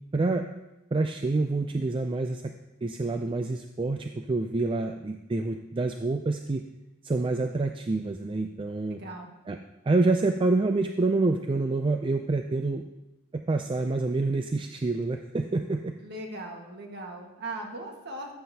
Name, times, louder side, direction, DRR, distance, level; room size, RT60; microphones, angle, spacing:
voice 1, 0.1-0.4 0.9-2.5 2.8-6.6 7.0-9.0 9.5-9.6 9.9-12.9 13.3-15.9, right 3 dB, 25° right, 5 dB, 0.3 m, -27 dB
voice 2, 8.9-9.3 16.0-18.4, right 2 dB, 50° right, 2 dB, 1.6 m, -39 dB
14.5 x 7.6 x 2.8 m, 0.96 s
head